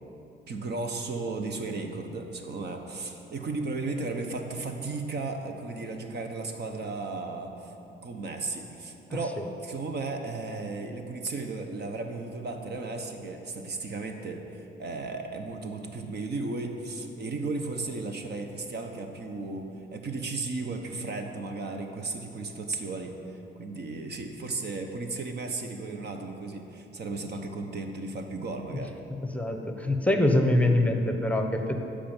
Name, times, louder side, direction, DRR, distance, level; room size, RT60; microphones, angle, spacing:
voice 1, 0.5-7.7 8.0-19.6 19.9-29.0, right 3 dB, 55° right, 4 dB, 1.3 m, -35 dB
voice 2, 29.3-31.8, left 1 dB, 5° left, 4 dB, 1.0 m, -24 dB
13.5 x 5.2 x 9.0 m, 2.9 s
cardioid pair, 90°, 20 cm